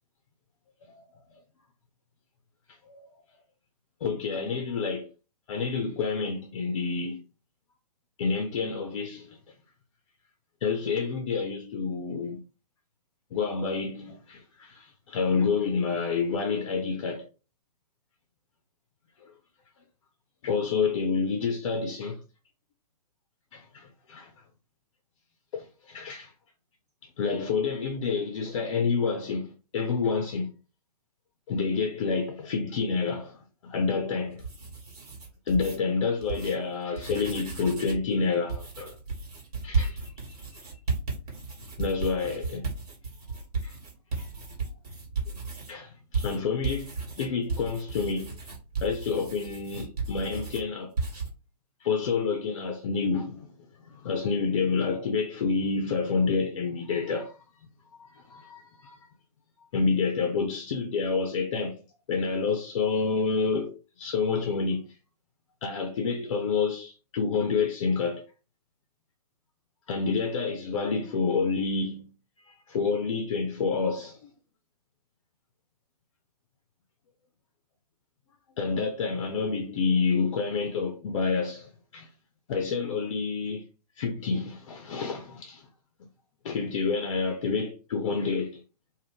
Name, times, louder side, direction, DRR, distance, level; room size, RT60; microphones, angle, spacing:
voice 1, 4.0-5.1 5.5-7.2 8.2-9.4 10.6-12.4 13.3-17.3 19.2-19.3 20.4-22.2 23.5-24.3 25.5-26.3 27.2-30.5 31.5-34.4 35.5-39.0 39.6-40.1 41.8-42.7 43.6-43.8 44.2-44.3 45.7-46.8 47.2-48.4 48.8-50.9 51.8-53.5 53.8-57.4 58.0-59.0 59.7-61.8 62.1-64.9 65.6-68.2 69.9-72.1 72.5-74.3 78.6-82.1 82.5-83.6 84.0-85.7 86.4-88.6, left 5 dB, 50° left, 0.5 m, -28 dB
sound 1, 34.3-35.8 36.2-36.5 36.9-38.1 38.5-45.7 46.1-50.6 51.0-51.3, right 4 dB, 65° right, 1.3 m, -34 dB
2.5 x 2.2 x 3.4 m
figure-of-eight pair, 120°, 21 cm